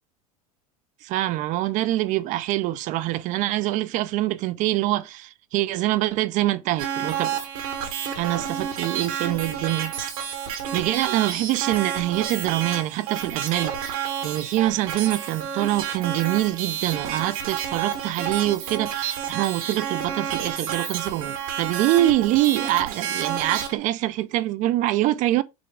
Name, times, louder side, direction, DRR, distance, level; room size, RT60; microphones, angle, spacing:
voice 1, 1.0-7.4 8.2-9.9 10.7-25.4, right 15 dB, 45° right, 0.4 m, -25 dB
sound 1, 6.8-23.7, right 8 dB, 85° right, 1.5 m, -30 dB
6.1 x 2.3 x 3.5 m
supercardioid pair, 115°, 18 cm